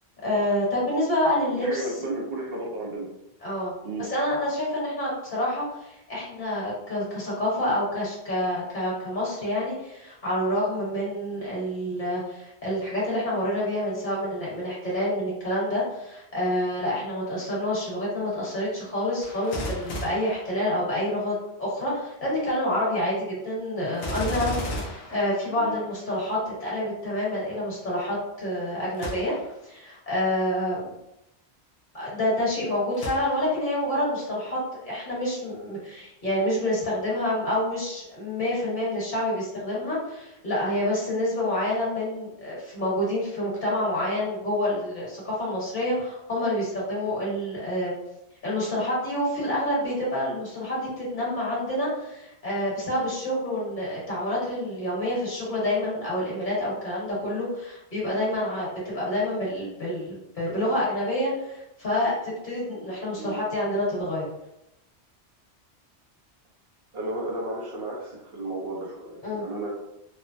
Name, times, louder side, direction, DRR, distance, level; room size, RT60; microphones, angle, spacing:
voice 1, 0.2-1.9 3.4-3.7 4.0-29.3 29.6-30.9 31.9-47.9 48.4-64.3 69.2-69.4, left 1 dB, 50° left, -6 dB, 1.4 m, -28 dB
voice 2, 1.5-3.1 3.8-4.1 25.5-25.9 63.1-63.4 66.9-69.7, right 2 dB, 65° right, -3 dB, 0.9 m, -33 dB
Gunshot gunfire, 19.2-21.2 23.9-26.0 28.9-29.6 30.2-30.3 32.9-33.7 34.3-34.4, equal, 70° left, 0.8 m, -35 dB
3.1 x 2.0 x 2.5 m, 0.87 s
omnidirectional pair, 1.1 m